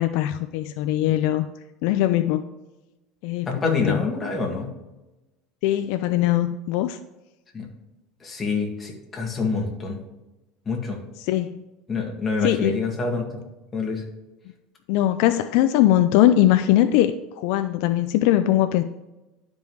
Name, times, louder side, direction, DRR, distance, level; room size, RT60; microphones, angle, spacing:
voice 1, 0.0-1.5 1.8-2.4 3.2-4.0 5.6-7.0 11.2-11.6 12.4-12.8 14.9-18.8, left 13 dB, 70° left, 10 dB, 0.4 m, -21 dB
voice 2, 3.5-4.7 7.5-7.7 8.2-10.0 10.7-11.0 11.9-13.3 13.7-14.0, left 3 dB, 20° left, 0 dB, 2.1 m, -26 dB
11.5 x 5.2 x 3.2 m, 1.0 s
supercardioid pair, 130°, 0 cm